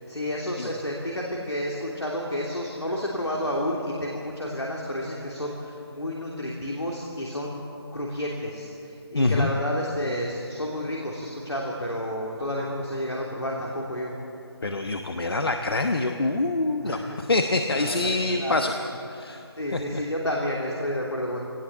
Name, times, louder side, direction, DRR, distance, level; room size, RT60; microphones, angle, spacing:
voice 1, 0.1-7.6 7.9-14.1 16.8-17.2 17.7-18.7 19.6-21.4, left 1 dB, 85° left, -2 dB, 3.1 m, -30 dB
voice 2, 9.1-9.5 14.6-18.7 19.2-19.4 19.7-20.0, left 2 dB, 65° left, 5 dB, 1.2 m, -25 dB
20.5 x 18.5 x 7.4 m, 2.9 s
figure-of-eight pair, 155°, 14 cm